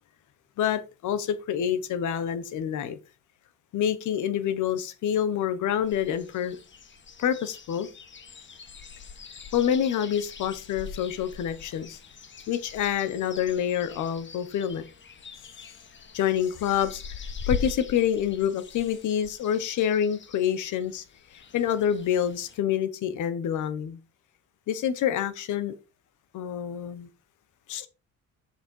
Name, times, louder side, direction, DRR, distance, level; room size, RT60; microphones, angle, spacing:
voice 1, 0.6-3.0 3.7-6.6 7.2-7.9 9.5-12.0 12.5-14.8 16.1-21.0 21.3-24.0 24.7-25.7 26.3-27.1 27.7-27.9, left 9 dB, 80° left, 1.3 m, -27 dB
sound 1, 5.8-22.6, left 5 dB, 40° left, 1.3 m, -41 dB
6.6 x 5.8 x 4.6 m
cardioid pair, 90°, 30 cm